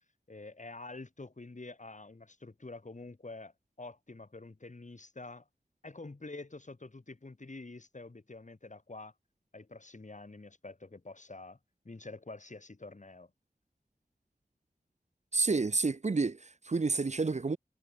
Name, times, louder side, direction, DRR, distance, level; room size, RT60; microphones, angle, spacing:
voice 1, 0.3-3.5 3.8-5.4 5.8-9.1 9.5-11.6 11.8-13.3, left 3 dB, 50° left, 2.8 m, -47 dB
voice 2, 15.3-17.6, right 3 dB, 50° right, 0.7 m, -29 dB
wide cardioid pair, 50°, 16 cm